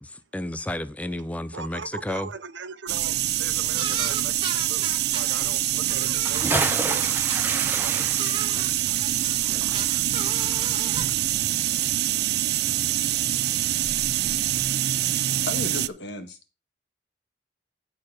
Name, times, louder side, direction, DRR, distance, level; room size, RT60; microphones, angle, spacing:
voice 1, 0.0-2.3, left 1 dB, 10° left, 0.5 m, -32 dB
voice 2, 1.5-8.0, right 5 dB, 90° right, 0.8 m, -40 dB
sound 1, 2.9-15.9, right 13 dB, 60° right, 0.4 m, -25 dB
sound 2, 3.7-5.5 5.9-7.8 8.2-11.0, right 5 dB, 30° right, 1.4 m, -34 dB
Bathtub (filling or washing) / Splash splatter, 6.1-11.1 11.4-11.5, right 2 dB, 10° right, 1.1 m, -30 dB
voice 3, 15.4-16.4, left 2 dB, 70° left, 1.7 m, -33 dB
13.0 x 4.8 x 4.8 m
head